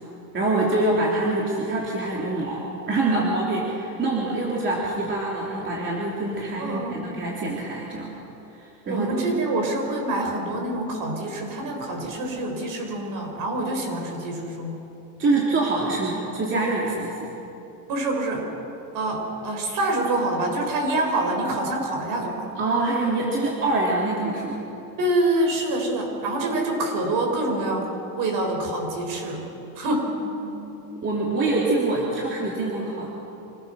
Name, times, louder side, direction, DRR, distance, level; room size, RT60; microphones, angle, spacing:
voice 1, 0.3-8.1 8.9-9.1 15.2-17.1 22.6-24.6 30.4-30.6 31.0-33.1, right 2 dB, 25° right, -4 dB, 3.0 m, -25 dB
voice 2, 6.6-7.1 8.9-14.8 17.9-18.5 18.9-22.5 25.0-27.9 28.2-29.5 29.8-30.1, right 2 dB, 45° right, 2 dB, 5.2 m, -26 dB
26.0 x 15.0 x 6.9 m, 2.9 s
supercardioid pair, 135°, 46 cm